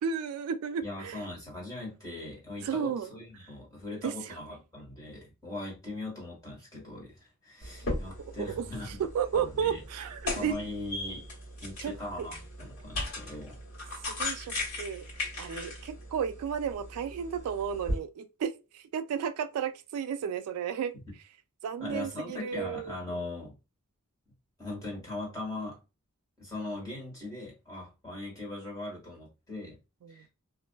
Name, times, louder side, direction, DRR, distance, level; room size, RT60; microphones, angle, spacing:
voice 1, 0.0-1.2 2.6-3.1 4.0-4.1 8.6-8.7 9.0-10.5 11.8-12.3 14.1-15.0 15.4-20.9 21.6-23.2 30.0-30.2, right 7 dB, 80° right, 0.3 m, -33 dB
voice 2, 0.8-9.0 9.3-9.8 10.3-11.3 11.6-13.6 21.8-23.6 24.6-25.8 26.4-29.8 30.1-30.3, left 2 dB, 15° left, 1.4 m, -40 dB
sound 1, 7.6-18.0, left 1 dB, 75° left, 1.3 m, -38 dB
2.4 x 2.4 x 2.2 m
head